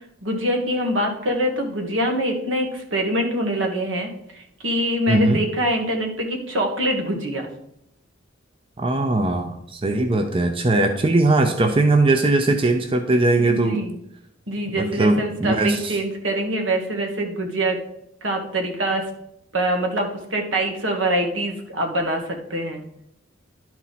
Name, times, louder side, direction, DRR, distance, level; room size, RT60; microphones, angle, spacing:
voice 1, 0.2-7.5 13.5-14.0 14.5-17.8 18.2-19.1 19.5-22.8, right 1 dB, 75° right, 3 dB, 1.6 m, -24 dB
voice 2, 5.1-5.4 8.8-13.8 14.8-16.0, right 2 dB, 30° right, 5 dB, 0.6 m, -20 dB
11.5 x 4.4 x 4.1 m, 0.77 s
head